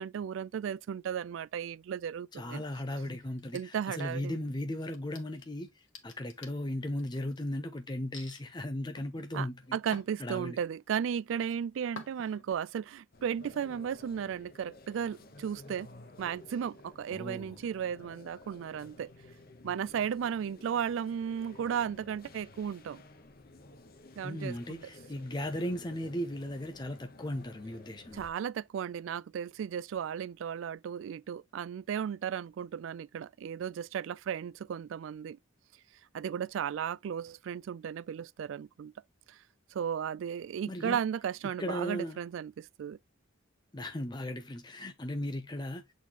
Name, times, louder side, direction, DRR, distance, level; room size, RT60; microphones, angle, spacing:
voice 1, 0.0-2.6 3.5-4.4 9.3-15.9 16.2-19.1 19.6-23.0 24.2-24.8 28.1-35.4 36.1-38.9 39.3-39.4 39.7-43.0, right 8 dB, 70° right, 0.3 m, -35 dB
voice 2, 2.3-9.6 10.2-10.6 17.1-17.6 24.2-28.2 40.7-41.0 41.6-42.2 43.7-45.8, left 1 dB, 20° left, 0.6 m, -37 dB
sound 1, 3.4-4.4 4.8-7.4 8.1-8.4 9.0-10.8 11.2-11.5 12.0-12.5, left 4 dB, 65° left, 1.7 m, -50 dB
sound 2, 13.1-28.3, left 2 dB, 50° left, 0.9 m, -54 dB
8.1 x 4.1 x 2.8 m
head